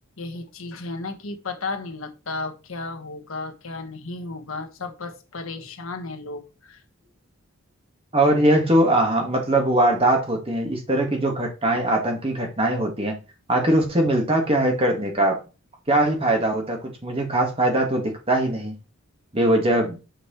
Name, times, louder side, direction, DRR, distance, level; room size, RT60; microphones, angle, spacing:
voice 1, 0.2-6.8, left 3 dB, 70° left, 1.2 m, -34 dB
voice 2, 8.1-13.2 13.5-15.4 15.9-18.7 19.3-20.0, right 1 dB, 25° right, 1.7 m, -21 dB
6.4 x 4.6 x 4.3 m
head